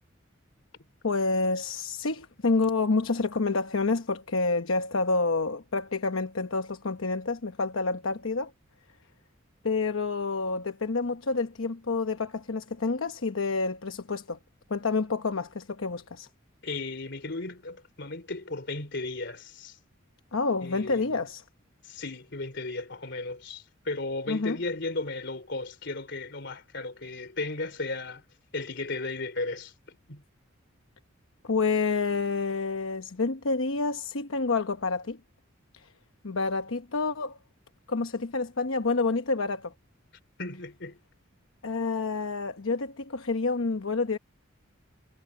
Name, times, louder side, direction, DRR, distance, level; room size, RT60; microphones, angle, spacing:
voice 1, 1.0-8.5 9.6-14.4 14.7-16.3 20.3-21.4 24.3-24.6 31.4-35.2 36.2-37.4 37.9-39.7 41.6-44.2, left 3 dB, 85° left, 1.0 m, -28 dB
voice 2, 16.6-19.8 20.6-21.2 21.8-28.2 28.5-30.2 40.4-41.0, left 3 dB, 60° left, 3.6 m, -35 dB
head